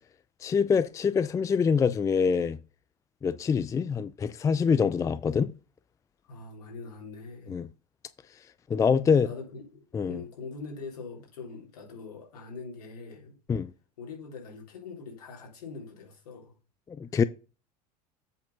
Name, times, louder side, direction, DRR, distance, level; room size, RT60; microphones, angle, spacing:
voice 1, 0.4-2.6 3.2-5.5 7.5-7.7 8.7-9.3 9.9-10.2 13.5-13.7 16.9-17.2, left 6 dB, 15° left, 0.4 m, -25 dB
voice 2, 6.2-7.6 9.2-13.3 14.0-16.5, left 4 dB, 65° left, 3.7 m, -43 dB
8.2 x 4.3 x 5.5 m
figure-of-eight pair, 70°, 21 cm